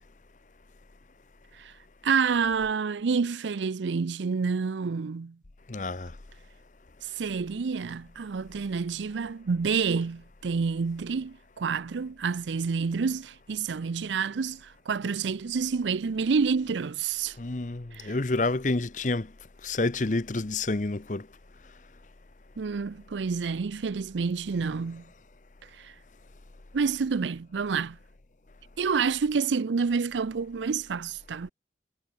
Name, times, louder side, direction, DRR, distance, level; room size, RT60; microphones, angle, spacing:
voice 1, 2.0-5.4 7.0-17.4 17.9-18.1 22.6-25.0 25.8-25.9 26.7-28.0 28.8-31.5, right 5 dB, 85° right, 0.5 m, -28 dB
voice 2, 5.7-6.1 17.4-19.3 19.6-21.3, left 2 dB, 45° left, 0.8 m, -28 dB
head